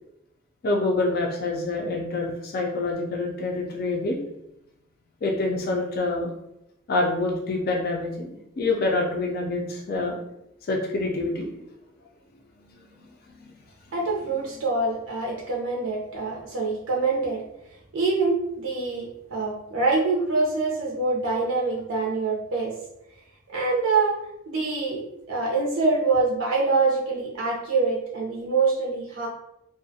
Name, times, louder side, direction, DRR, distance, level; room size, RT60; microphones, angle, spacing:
voice 1, 0.6-4.2 5.2-6.3 6.9-10.2 10.7-11.5 13.4-13.5, left 2 dB, 50° left, 0 dB, 0.4 m, -26 dB
voice 2, 13.9-17.4 17.9-22.7 23.5-24.2 24.5-29.3, right 3 dB, 75° right, -3 dB, 0.5 m, -25 dB
2.3 x 2.1 x 2.6 m, 0.84 s
head